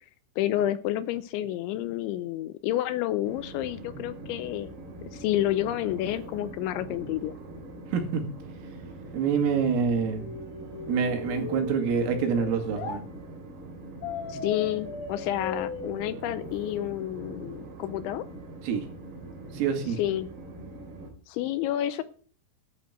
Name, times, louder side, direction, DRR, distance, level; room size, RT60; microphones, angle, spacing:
voice 1, 0.4-7.4 14.3-18.2 20.0-20.3 21.3-22.0, left 13 dB, 80° left, 13 dB, 2.8 m, -30 dB
Train, 3.2-21.1, right 2 dB, 55° right, 4.6 m, -43 dB
voice 2, 7.9-8.3 9.1-10.3 10.9-13.0 18.6-18.9 19.5-20.0, right 6 dB, 90° right, 4 dB, 4.9 m, -26 dB
sound 1, 10.2-13.0 14.0-17.0, left 6 dB, 50° left, 2.0 m, -38 dB
11.5 x 6.3 x 8.9 m, 0.43 s
omnidirectional pair, 5.7 m